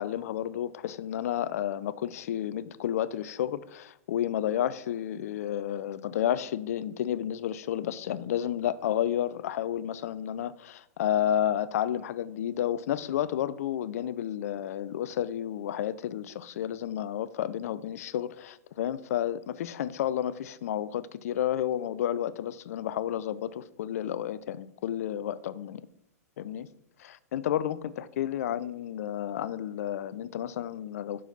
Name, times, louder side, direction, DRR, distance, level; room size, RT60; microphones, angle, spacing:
voice 1, 0.0-25.8 26.4-26.7 27.0-31.2, left 11 dB, 65° left, 0.4 m, -31 dB
6.1 x 4.5 x 5.3 m
hypercardioid pair, 115°, 9 cm